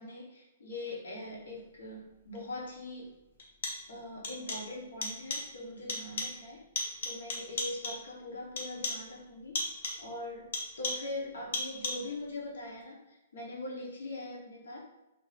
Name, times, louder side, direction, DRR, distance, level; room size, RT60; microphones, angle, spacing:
voice 1, 0.0-3.1 3.9-6.6 7.0-9.6 10.0-10.5 10.8-14.8, left 2 dB, 85° left, -3 dB, 1.0 m, -42 dB
sound 1, 2.4-2.5 3.4-4.0 4.2-4.8 5.0-5.6 5.9-6.5 6.8-8.1 8.6-9.1 9.6-10.1 10.5-11.2 11.5-12.2, left 2 dB, 55° left, 0.7 m, -37 dB
2.7 x 2.5 x 3.1 m, 0.95 s
hypercardioid pair, 175°, 0 cm